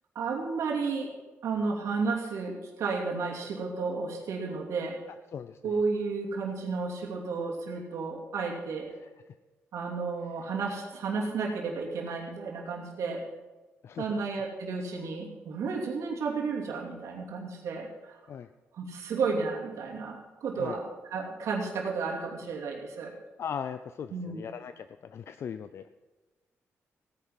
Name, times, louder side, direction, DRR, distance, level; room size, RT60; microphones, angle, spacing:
voice 1, 0.1-1.1 1.4-5.0 5.6-8.9 9.7-13.2 14.0-18.2 18.7-23.1 24.1-24.4, right 4 dB, 85° right, -1 dB, 2.9 m, -32 dB
voice 2, 5.1-5.8 8.9-9.3 13.8-14.2 18.3-18.5 20.6-20.8 23.4-25.9, left 7 dB, 55° left, 11 dB, 0.5 m, -39 dB
16.5 x 9.9 x 5.8 m, 1.2 s
cardioid pair, 130°, 5 cm